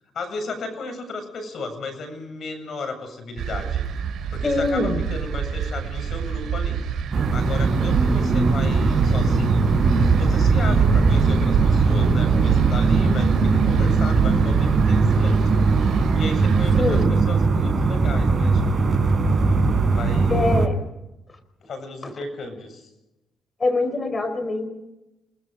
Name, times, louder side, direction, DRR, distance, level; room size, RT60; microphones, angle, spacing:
voice 1, 0.1-3.8 4.3-6.8 7.3-9.7 10.2-15.6 16.1-19.2 19.9-20.6 21.7-22.9, left 3 dB, 55° left, 6 dB, 7.9 m, -34 dB
sound 1, 3.4-17.1, right 7 dB, 65° right, 4.2 m, -25 dB
voice 2, 4.4-5.0 16.7-17.2 20.3-20.8 22.0-22.1 23.6-24.7, left 2 dB, 30° left, 10 dB, 4.7 m, -23 dB
sound 2, 7.1-20.7, right 3 dB, 35° right, 4.1 m, -20 dB
29.5 x 20.0 x 5.3 m, 0.95 s
cardioid pair, 90°, 0 cm